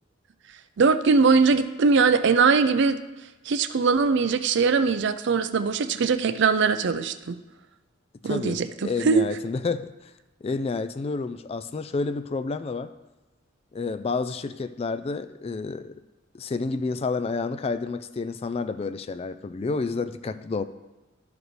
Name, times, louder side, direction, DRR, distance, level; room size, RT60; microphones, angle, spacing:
voice 1, 0.8-3.0 3.5-7.4 8.2-9.3, right 5 dB, 60° right, 11 dB, 0.4 m, -21 dB
voice 2, 8.2-10.1 10.4-12.9 13.7-15.9 16.3-20.6, left 4 dB, 30° left, 11 dB, 0.3 m, -30 dB
12.5 x 5.0 x 3.2 m, 1.1 s
head